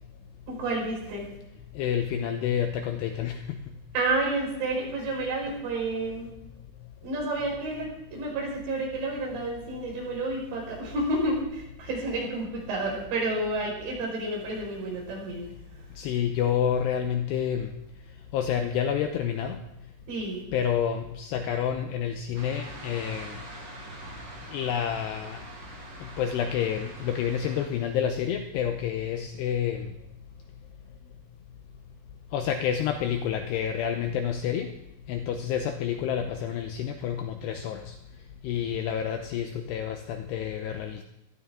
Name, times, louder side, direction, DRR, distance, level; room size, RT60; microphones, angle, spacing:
voice 1, 0.5-1.3 3.9-6.3 7.0-7.9 8.1-15.4 20.1-20.4, right 2 dB, 60° right, -2 dB, 7.1 m, -30 dB
voice 2, 1.8-3.7 16.0-17.7 18.3-19.6 20.5-23.4 24.5-25.4 26.0-29.9 32.3-34.7 35.1-37.9 38.4-41.0, left 9 dB, 85° left, 6 dB, 2.4 m, -29 dB
sound 1, 22.3-27.7, right 2 dB, 35° right, 3.9 m, -44 dB
19.0 x 14.0 x 3.7 m, 0.86 s
omnidirectional pair, 5.7 m